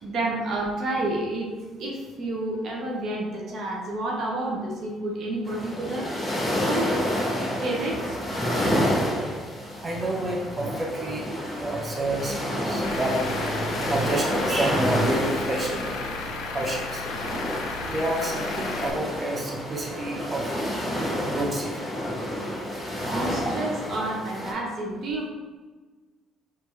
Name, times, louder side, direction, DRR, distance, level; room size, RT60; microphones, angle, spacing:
voice 1, 0.0-1.5 1.8-6.1 6.7-7.1 7.6-8.2 23.1-25.3, right 2 dB, 60° right, -2 dB, 0.9 m, -30 dB
sound 1, 5.4-24.5, equal, 15° left, 1.4 m, -29 dB
voice 2, 9.8-11.3 11.6-12.3 12.6-13.2 13.6-15.7 16.5-17.0 17.9-20.4 21.3-21.7, right 1 dB, 30° right, -1 dB, 0.9 m, -29 dB
Truck / Idling, 12.8-18.9, left 3 dB, 75° left, 0.5 m, -34 dB
4.3 x 2.8 x 3.2 m, 1.3 s
hypercardioid pair, 55°, 0 cm